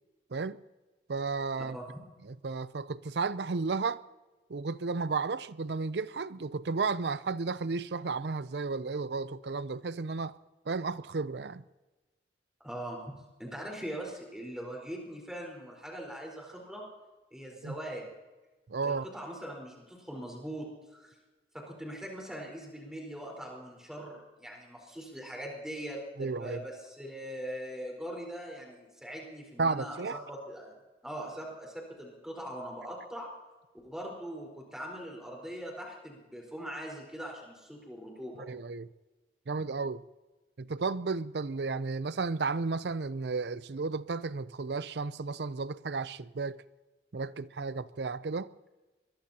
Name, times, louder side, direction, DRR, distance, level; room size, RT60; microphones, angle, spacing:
voice 1, 1.1-1.8 2.3-4.0 4.5-10.4 10.7-11.6 17.6-17.8 18.7-19.1 26.2-26.6 29.6-30.2 38.4-38.9 39.5-40.0 40.6-46.6 47.1-48.5, right 4 dB, 75° right, 0.5 m, -33 dB
voice 2, 12.6-13.1 13.4-16.8 17.3-18.1 18.8-21.1 21.5-30.8 31.0-33.3 33.7-38.4, equal, 5° right, 4.4 m, -41 dB
23.0 x 21.5 x 2.9 m
head